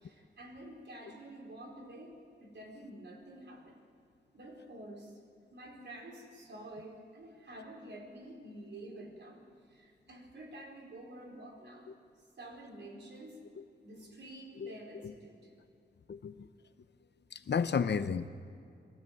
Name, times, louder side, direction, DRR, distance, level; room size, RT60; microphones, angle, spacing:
voice 1, 0.0-3.8 4.3-5.2 5.5-9.4 9.7-11.9 12.4-13.4 13.8-15.5, right 1 dB, 75° right, 0 dB, 4.5 m, -49 dB
voice 2, 16.1-16.5 17.3-18.3, left 6 dB, 70° left, 11 dB, 0.8 m, -32 dB
22.5 x 16.0 x 9.4 m, 2.4 s
wide cardioid pair, 115°, 18 cm